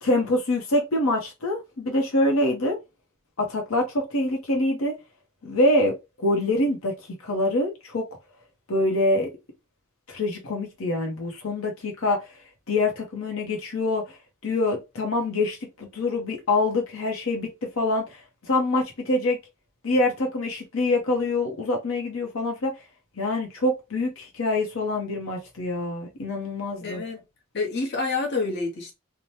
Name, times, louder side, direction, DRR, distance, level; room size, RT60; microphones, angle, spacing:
voice 1, 0.0-2.7 3.4-4.9 5.4-6.9 7.2-8.1 8.7-9.3 10.1-12.3 12.7-14.2 14.4-17.5 17.8-19.4 19.8-22.7 23.2-27.0, left 2 dB, 80° left, 0.8 m, -25 dB
voice 2, 26.8-27.2 27.5-29.0, left 3 dB, 50° left, 0.9 m, -28 dB
2.8 x 2.1 x 3.1 m
head